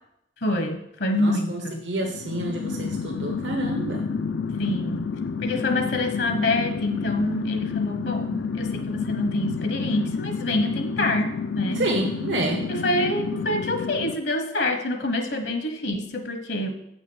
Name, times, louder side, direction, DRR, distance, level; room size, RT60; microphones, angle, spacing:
voice 1, 0.4-1.9 4.6-5.1 5.4-11.3 11.5-11.9 12.7-16.7, left 1 dB, 70° left, 6 dB, 1.0 m, -26 dB
voice 2, 1.2-4.1 11.7-12.6, right 1 dB, 85° right, 0 dB, 1.3 m, -28 dB
sound 1, 2.0-14.2, left 5 dB, 85° left, 0.4 m, -29 dB
7.8 x 5.8 x 6.2 m, 0.80 s
head